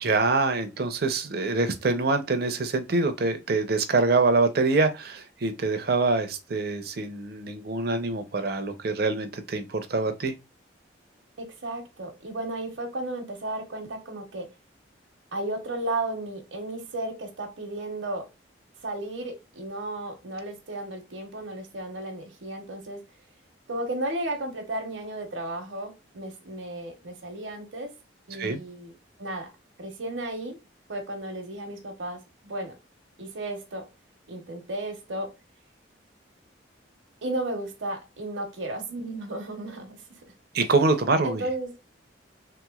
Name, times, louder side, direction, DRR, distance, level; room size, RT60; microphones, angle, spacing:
voice 1, 0.0-10.3 28.4-28.6 40.5-41.4, right 3 dB, 55° right, 0.6 m, -25 dB
voice 2, 11.4-14.5 15.3-18.3 18.8-23.0 23.7-27.9 28.3-28.9 29.2-29.5 29.8-30.6 30.9-32.8 33.2-33.9 34.3-35.3 37.2-40.0 41.2-41.8, right 1 dB, 80° right, 0.9 m, -34 dB
3.4 x 3.0 x 2.3 m
head